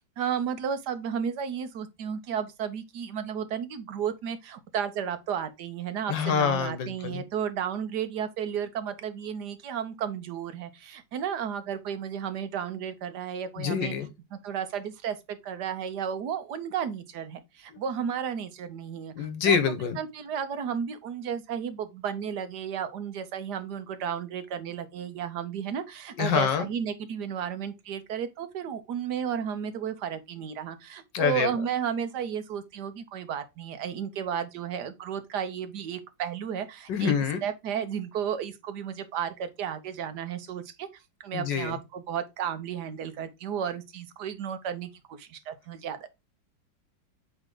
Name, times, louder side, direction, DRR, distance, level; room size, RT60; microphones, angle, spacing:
voice 1, 0.2-13.9 14.3-19.6 20.0-37.1 37.4-40.9 41.2-46.1, right 8 dB, 70° right, 1.3 m, -33 dB
voice 2, 6.1-7.2 13.6-14.1 17.7-17.8 19.2-20.0 26.2-26.7 31.1-31.5 36.9-37.4 41.3-41.8, left 7 dB, 75° left, 1.7 m, -26 dB
8.1 x 3.3 x 3.7 m
omnidirectional pair, 2.0 m